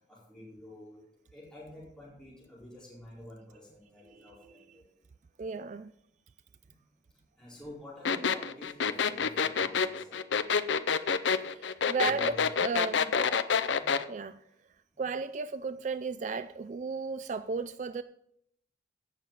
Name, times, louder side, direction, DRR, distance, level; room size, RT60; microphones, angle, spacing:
voice 1, 0.1-1.0 1.3-4.8 6.6-6.7 7.3-10.2 11.3-11.4 12.0-12.5 13.7-14.0 14.9-15.1, left 1 dB, 5° left, 4.4 m, -49 dB
voice 2, 5.4-5.9 8.2-8.3 11.5-13.1 14.1-14.4 15.0-18.0, right 4 dB, 40° right, 0.3 m, -34 dB
sound 1, 8.1-14.0, left 6 dB, 80° left, 0.6 m, -27 dB
16.5 x 6.6 x 4.0 m
head